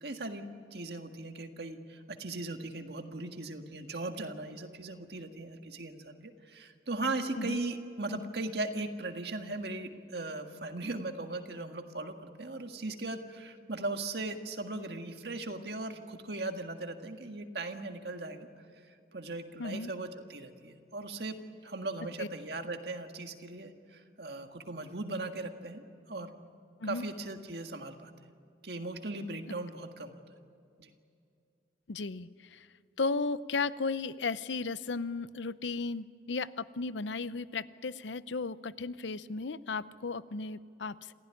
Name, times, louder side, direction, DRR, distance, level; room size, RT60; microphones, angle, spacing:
voice 1, 0.0-0.5 0.7-18.5 19.1-21.4 21.6-26.3 26.8-28.1 28.6-30.2 30.8-30.9, right 2 dB, 65° right, 5 dB, 1.8 m, -38 dB
voice 2, 19.6-19.9 22.2-22.3 26.8-27.0 31.9-32.7 33.0-41.1, left 4 dB, 85° left, 15 dB, 0.7 m, -35 dB
27.5 x 16.0 x 9.9 m, 2.5 s
head